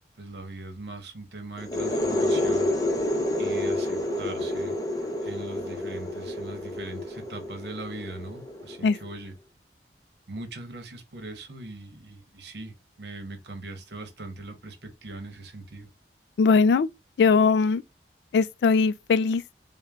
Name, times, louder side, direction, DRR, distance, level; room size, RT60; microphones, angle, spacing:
voice 1, 0.2-2.7 3.4-4.8 5.2-9.4 10.3-15.9, right 2 dB, 70° right, 1.0 m, -40 dB
sound 1, 1.6-9.1, left 1 dB, 20° left, 0.7 m, -29 dB
voice 2, 16.4-16.9 17.2-17.8 18.3-19.4, left 5 dB, 70° left, 0.3 m, -20 dB
4.4 x 2.2 x 3.5 m
head